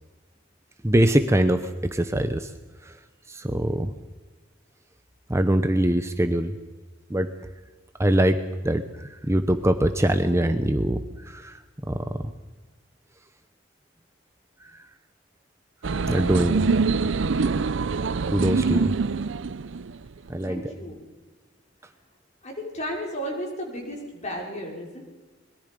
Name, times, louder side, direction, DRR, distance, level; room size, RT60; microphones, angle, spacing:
voice 1, 0.8-2.5 2.8-3.0 3.3-3.9 5.3-6.6 7.1-7.3 8.0-8.4 8.6-11.6 11.9-12.3 14.6-14.9 16.1-16.6 18.3-18.9 20.3-20.7, right 1 dB, 15° right, 9 dB, 0.8 m, -23 dB
sound 1, 15.8-20.3, right 4 dB, 70° right, 0.6 m, -24 dB
voice 2, 20.4-21.0 22.4-25.0, equal, 40° left, 0 dB, 5.2 m, -34 dB
24.5 x 21.5 x 5.3 m, 1.3 s
head